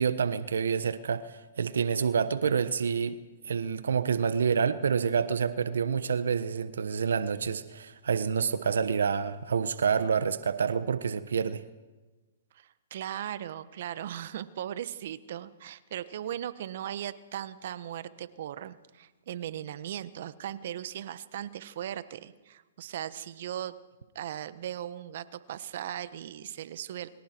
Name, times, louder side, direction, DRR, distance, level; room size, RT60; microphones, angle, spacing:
voice 1, 0.0-3.2 3.4-11.6, right 6 dB, 80° right, 1.1 m, -28 dB
voice 2, 12.5-23.7 24.1-27.1, right 11 dB, 60° right, 1.3 m, -38 dB
28.0 x 23.5 x 4.6 m
hypercardioid pair, 130°, 0 cm